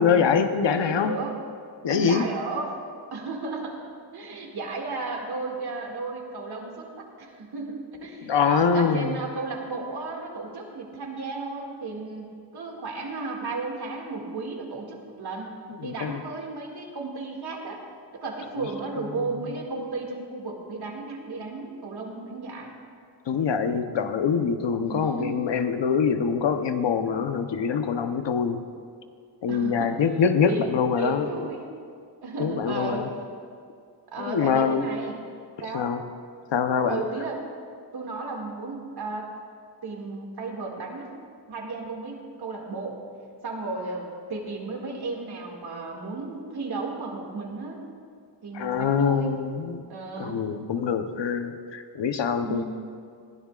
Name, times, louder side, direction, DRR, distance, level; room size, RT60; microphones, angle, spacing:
voice 1, 0.0-1.1 1.8-2.2 8.2-9.2 15.8-16.2 23.3-28.7 29.4-31.3 32.4-33.1 34.3-34.9 35.7-36.0 36.5-37.0 48.5-49.8 50.2-52.6, left 6 dB, 80° left, 7 dB, 1.0 m, -24 dB
voice 2, 0.7-1.4 1.9-2.8 3.1-3.8 4.1-17.8 18.1-22.7 24.7-25.4 29.5-29.9 30.5-30.7 31.0-31.6 32.2-33.1 34.1-35.1 35.6-35.9 36.9-37.4 37.9-39.3 39.8-41.2 41.5-43.0 43.4-47.8 48.4-49.3 49.9-50.5 52.4-52.6, right 3 dB, 60° right, 0 dB, 2.3 m, -34 dB
20.5 x 16.5 x 2.5 m, 2.3 s
wide cardioid pair, 165°, 43 cm